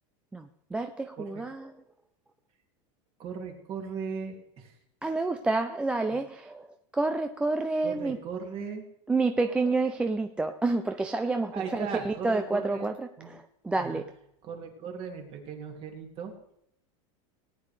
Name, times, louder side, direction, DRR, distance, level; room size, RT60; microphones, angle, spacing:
voice 1, 0.3-1.7 5.0-6.7 6.9-8.2 9.1-14.1, right 3 dB, 5° right, 6 dB, 0.3 m, -29 dB
voice 2, 3.2-4.7 6.1-6.2 7.8-8.8 11.5-12.9 13.2-13.3 13.8-14.0 14.4-16.3, right 6 dB, 35° right, 3 dB, 2.2 m, -38 dB
18.5 x 9.7 x 3.2 m, 0.76 s
supercardioid pair, 160°, 17 cm